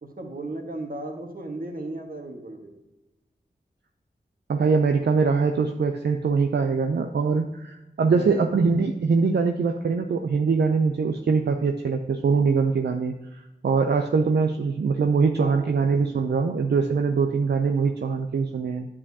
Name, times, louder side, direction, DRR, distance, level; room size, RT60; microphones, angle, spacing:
voice 1, 0.0-2.7 8.0-8.6 15.4-15.9, right 2 dB, 55° right, 2 dB, 1.5 m, -36 dB
voice 2, 4.5-18.9, right 5 dB, 75° right, 5 dB, 0.5 m, -23 dB
8.5 x 7.3 x 2.8 m, 0.99 s
cardioid pair, 45°, 17 cm